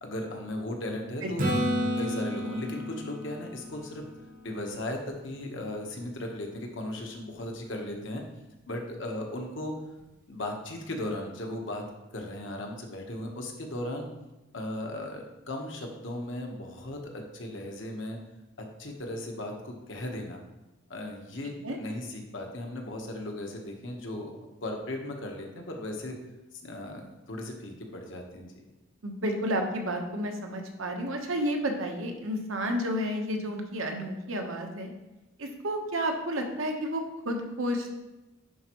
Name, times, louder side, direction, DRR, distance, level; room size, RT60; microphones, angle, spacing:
voice 1, 0.0-1.5 2.0-4.0 4.4-8.2 8.7-9.7 10.3-11.8 12.1-14.1 14.5-18.2 18.8-20.4 20.9-24.3 24.6-26.1 26.6-28.6, left 1 dB, 65° left, 2 dB, 1.1 m, -37 dB
voice 2, 1.2-1.6 21.6-21.8 29.0-34.9 35.4-37.9, equal, 75° right, 3 dB, 1.0 m, -31 dB
Acoustic guitar / Strum, 1.4-5.2 10.0-10.1, equal, 40° right, 0.9 m, -32 dB
10.5 x 4.5 x 3.0 m, 1.0 s
head